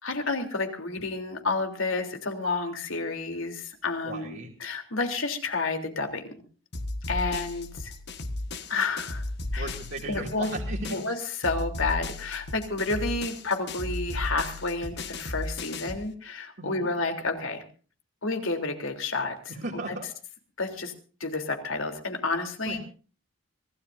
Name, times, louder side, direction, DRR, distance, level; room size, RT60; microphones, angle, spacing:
voice 1, 0.0-6.3 7.1-7.9 8.7-9.2 9.5-9.7 10.1-10.5 10.9-11.2 11.4-17.6 18.2-19.5 20.6-20.9 21.2-22.8, left 3 dB, 75° left, 4 dB, 3.6 m, -30 dB
voice 2, 4.0-4.5 9.6-11.0 16.6-16.9 19.5-20.1 22.7-22.8, right 2 dB, 55° right, -2 dB, 2.8 m, -36 dB
sound 1, 6.7-11.1 11.4-16.1, left 2 dB, 55° left, 1.7 m, -35 dB
25.5 x 17.0 x 2.7 m, 0.39 s
head